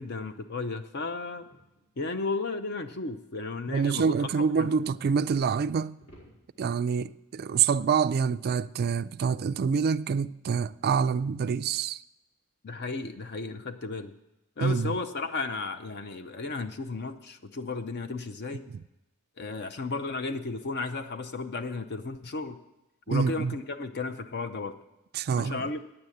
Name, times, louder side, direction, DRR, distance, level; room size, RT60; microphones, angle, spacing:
voice 1, 0.0-1.4 2.0-4.7 12.6-14.2 14.6-18.6 19.4-22.6 23.1-24.8 25.3-25.8, left 3 dB, 50° left, 0.6 m, -34 dB
sound 1, 1.5-2.3 4.5-5.5 6.0-7.0, equal, 70° left, 5.0 m, -56 dB
voice 2, 3.7-6.0 6.6-12.0 14.6-14.9 18.7-18.8 23.1-23.5 25.1-25.7, right 6 dB, 45° right, 0.3 m, -26 dB
9.8 x 7.8 x 8.4 m
head